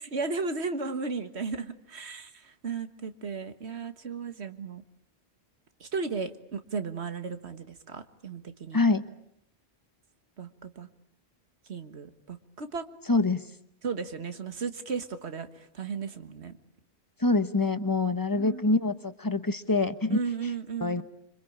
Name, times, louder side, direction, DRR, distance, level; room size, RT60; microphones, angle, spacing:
voice 1, 0.0-4.8 5.8-8.8 10.4-10.9 11.7-12.9 13.8-16.6 18.3-18.7 20.1-21.0, right 4 dB, 80° right, 10 dB, 1.8 m, -35 dB
voice 2, 13.1-13.5 17.2-20.2 20.8-21.0, left 3 dB, 20° left, 11 dB, 1.1 m, -25 dB
26.5 x 25.5 x 8.7 m, 0.77 s
omnidirectional pair, 1.1 m